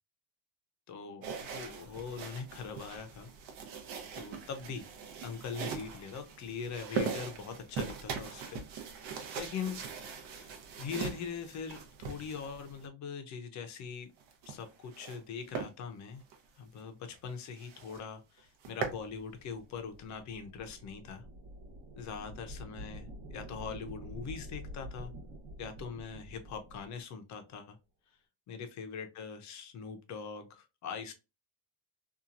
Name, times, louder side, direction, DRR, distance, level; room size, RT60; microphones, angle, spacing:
voice 1, 0.9-3.3 4.1-4.9 5.2-8.6 9.0-9.8 10.3-14.1 14.5-16.2 16.6-21.2 21.9-25.1 25.6-27.8 28.5-31.1, left 6 dB, 35° left, 6 dB, 0.6 m, -42 dB
sound 1, 1.2-12.9 14.2-15.2 15.5-15.7 16.2-16.4 16.8-16.9 17.2-17.3 17.6-18.0 18.4-19.0, right 6 dB, 70° right, 0.9 m, -41 dB
sound 2, 18.9-26.9, equal, 50° right, 1.1 m, -48 dB
2.8 x 2.4 x 2.5 m, 0.28 s
cardioid pair, 145°, 49 cm